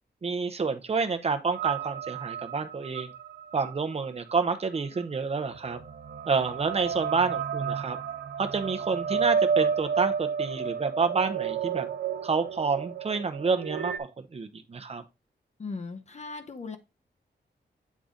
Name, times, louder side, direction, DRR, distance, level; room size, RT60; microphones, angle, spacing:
voice 1, 0.2-3.1 3.5-5.8 6.3-8.0 8.4-11.9 12.2-15.0, right 4 dB, 35° right, 0.7 m, -29 dB
sound 1, 1.5-14.0, right 6 dB, 70° right, 0.7 m, -31 dB
voice 2, 15.6-16.8, left 4 dB, 40° left, 0.7 m, -38 dB
8.3 x 3.8 x 3.7 m
wide cardioid pair, 150°, 18 cm